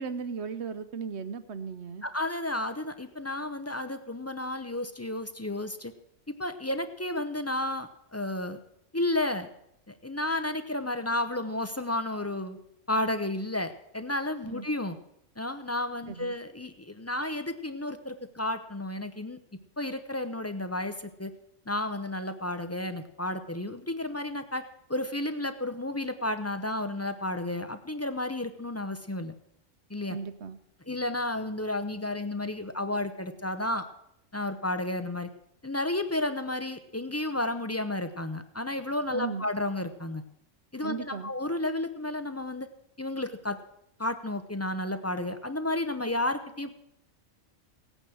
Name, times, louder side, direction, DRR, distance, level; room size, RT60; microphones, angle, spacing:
voice 1, 0.0-2.1 14.4-14.7 16.1-16.3 30.1-30.6 39.1-39.5 40.8-41.3, right 5 dB, 60° right, 11 dB, 1.1 m, -36 dB
voice 2, 2.0-5.9 6.3-8.6 8.9-9.5 9.9-12.6 12.9-15.0 15.4-19.4 19.8-21.3 21.7-29.3 29.9-30.2 30.9-33.9 34.3-35.3 35.6-40.2 40.7-42.7 43.0-43.6 44.0-46.7, left 1 dB, 15° left, 9 dB, 0.5 m, -32 dB
17.0 x 9.1 x 6.2 m, 0.77 s
omnidirectional pair, 1.3 m